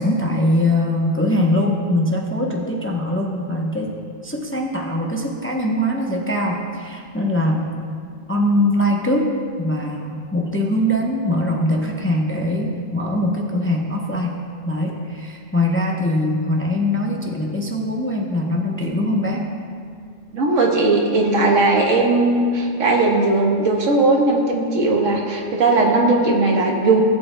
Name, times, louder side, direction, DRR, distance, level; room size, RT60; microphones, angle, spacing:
voice 1, 0.0-3.9 4.2-7.7 8.3-14.4 14.6-19.5, left 1 dB, 15° left, -1 dB, 0.6 m, -22 dB
voice 2, 20.3-27.0, right 2 dB, 85° right, -1 dB, 1.6 m, -18 dB
17.5 x 7.9 x 2.2 m, 2.3 s
omnidirectional pair, 1.3 m